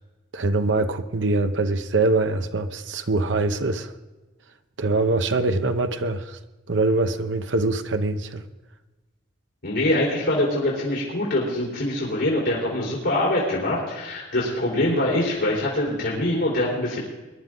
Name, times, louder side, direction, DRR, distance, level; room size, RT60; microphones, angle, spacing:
voice 1, 0.3-3.9 4.8-6.4 6.7-8.4, right 2 dB, 90° right, 0.8 m, -23 dB
voice 2, 9.6-17.0, left 1 dB, 90° left, 4.0 m, -24 dB
22.0 x 11.0 x 3.9 m
head